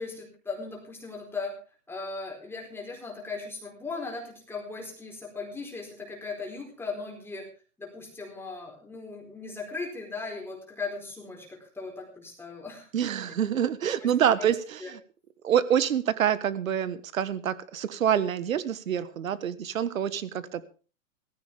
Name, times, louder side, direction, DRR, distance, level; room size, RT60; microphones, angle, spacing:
voice 1, 0.0-1.6 1.9-7.5 7.8-12.9 14.0-14.1 14.4-14.5 14.8-14.9, left 4 dB, 5° left, 0 dB, 4.3 m, -38 dB
voice 2, 12.9-15.0 15.4-20.7, right 9 dB, 85° right, 15 dB, 1.5 m, -26 dB
18.0 x 15.0 x 3.5 m, 0.37 s
hypercardioid pair, 145°, 40 cm